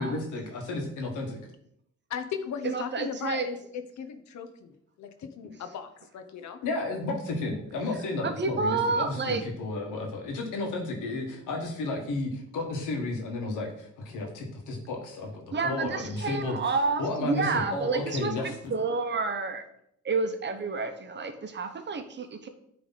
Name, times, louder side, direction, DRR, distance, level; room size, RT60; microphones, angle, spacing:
voice 1, 0.0-1.4 6.6-16.6 17.0-18.7, left 2 dB, 85° left, 1 dB, 1.6 m, -32 dB
voice 2, 2.1-6.6, left 7 dB, 65° left, 8 dB, 0.9 m, -37 dB
voice 3, 2.6-3.5 8.2-9.4 15.5-19.7 20.0-22.5, right 4 dB, 35° right, 7 dB, 0.9 m, -29 dB
9.2 x 3.5 x 4.1 m, 0.74 s
cardioid pair, 90°, 30 cm